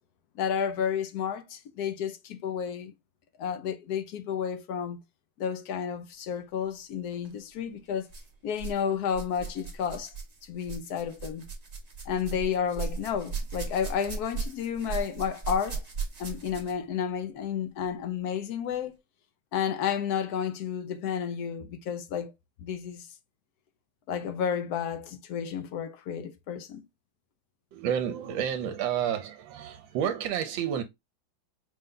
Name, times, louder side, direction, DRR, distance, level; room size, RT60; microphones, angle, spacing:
voice 1, 0.4-2.9 3.4-5.0 5.4-8.1 8.4-10.1 10.4-11.5 12.1-15.8 16.2-18.9 19.5-22.3 22.6-23.1 24.1-26.8, left 8 dB, 70° left, 1.0 m, -31 dB
sound 1, 7.1-7.3 8.1-8.8 9.1-16.9 17.8-17.9 18.7-18.8, right 5 dB, 35° right, 0.6 m, -37 dB
voice 2, 27.7-30.8, right 9 dB, 85° right, 1.3 m, -30 dB
5.2 x 2.2 x 3.7 m
omnidirectional pair, 2.1 m